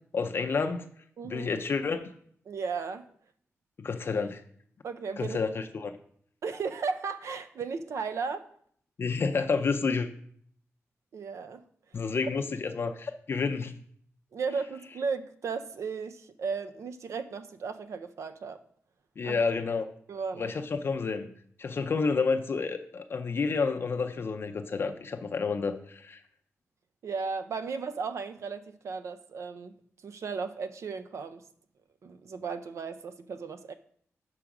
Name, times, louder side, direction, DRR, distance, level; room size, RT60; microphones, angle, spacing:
voice 1, 0.1-0.9 1.2-2.1 3.8-4.4 5.2-5.9 9.0-10.1 11.9-13.8 19.2-19.9 20.4-21.3 21.6-26.2, left 4 dB, 50° left, 6 dB, 0.5 m, -29 dB
voice 2, 1.2-1.5 2.5-3.0 4.8-5.4 6.4-8.5 11.1-11.6 14.3-18.6 19.2-19.4 20.1-20.5 27.0-29.7 30.0-31.4 32.0-33.7, right 5 dB, 70° right, 10 dB, 0.6 m, -35 dB
6.2 x 4.9 x 5.9 m, 0.62 s
wide cardioid pair, 135°, 5 cm